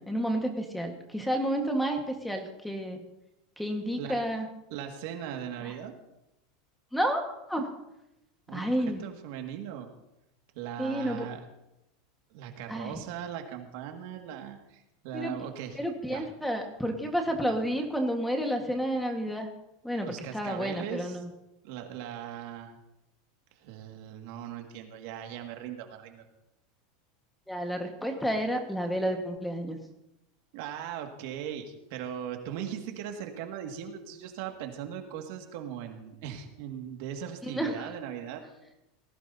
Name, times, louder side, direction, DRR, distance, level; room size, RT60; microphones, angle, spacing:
voice 1, 0.0-3.0 3.6-4.5 6.9-7.2 7.5-7.7 8.5-9.0 10.8-11.3 12.7-13.0 15.1-15.3 15.7-19.5 19.8-21.3 27.5-29.8 37.5-37.9, equal, 5° left, 3 dB, 1.6 m, -30 dB
voice 2, 4.7-5.9 8.5-9.9 10.5-11.4 12.3-15.8 16.1-16.3 20.0-21.2 21.6-22.7 23.6-26.3 30.5-38.4, right 9 dB, 65° right, 4 dB, 2.0 m, -39 dB
19.0 x 15.5 x 2.8 m, 0.88 s
supercardioid pair, 140°, 0 cm